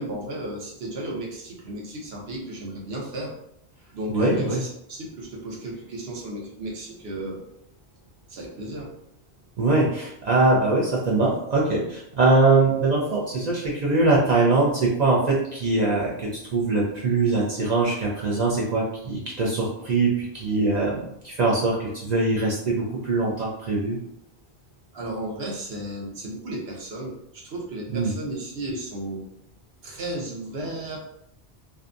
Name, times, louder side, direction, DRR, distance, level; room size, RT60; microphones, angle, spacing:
voice 1, 0.0-3.3 3.9-7.4 8.3-8.9 24.9-29.2 29.8-31.1, right 1 dB, 70° right, -1 dB, 0.9 m, -34 dB
voice 2, 4.1-4.6 9.6-24.0 27.9-28.1, right 3 dB, 55° right, -4 dB, 0.5 m, -22 dB
2.6 x 2.2 x 2.5 m, 0.76 s
omnidirectional pair, 1.1 m